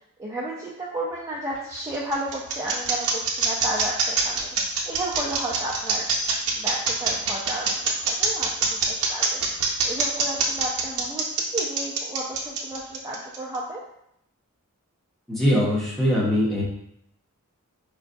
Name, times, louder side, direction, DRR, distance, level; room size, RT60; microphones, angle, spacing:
voice 1, 0.2-4.5 4.9-6.1 6.5-7.7 8.0-9.4 9.8-13.8, right 1 dB, 15° right, -5 dB, 0.3 m, -32 dB
sound 1, 1.5-13.6, right 5 dB, 70° right, 0.6 m, -24 dB
voice 2, 15.3-16.6, equal, ahead, -6 dB, 0.8 m, -21 dB
4.7 x 2.2 x 2.5 m, 0.76 s
head